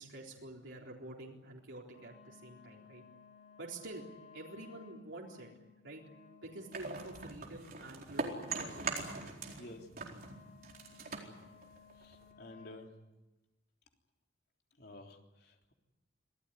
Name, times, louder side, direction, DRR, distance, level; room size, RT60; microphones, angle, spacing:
voice 1, 0.0-3.0 3.6-4.0 4.3-5.5 5.8-6.0 6.4-9.7, right 2 dB, 85° right, -2 dB, 4.1 m, -48 dB
Wind instrument woodwind instrument, 1.9-12.9, left 4 dB, 35° left, 6.6 m, -59 dB
sound 1, 6.7-9.7 9.9-12.3, right 4 dB, 50° right, 4.3 m, -41 dB
voice 2, 9.6-9.9 11.2-11.4 12.0-12.9 14.8-15.7, left 2 dB, 55° left, 2 dB, 3.6 m, -52 dB
26.5 x 17.5 x 9.8 m, 1.0 s
head